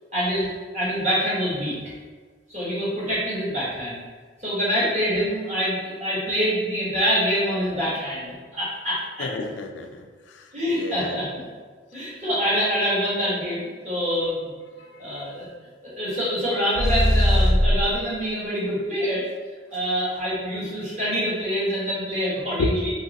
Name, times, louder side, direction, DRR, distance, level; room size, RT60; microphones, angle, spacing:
voice 1, 0.1-0.5 0.7-1.8 2.5-4.0 4.4-9.3 10.5-11.4 11.9-14.5 15.0-15.5 15.8-19.2 19.7-22.9, equal, 40° right, -9 dB, 1.4 m, -25 dB
voice 2, 9.2-11.2 14.8-15.3 22.6-22.7, left 2 dB, 80° left, 4 dB, 0.4 m, -31 dB
sound 1, 16.7-18.0, equal, 20° left, 0.4 m, -19 dB
3.1 x 2.8 x 2.9 m, 1.5 s
head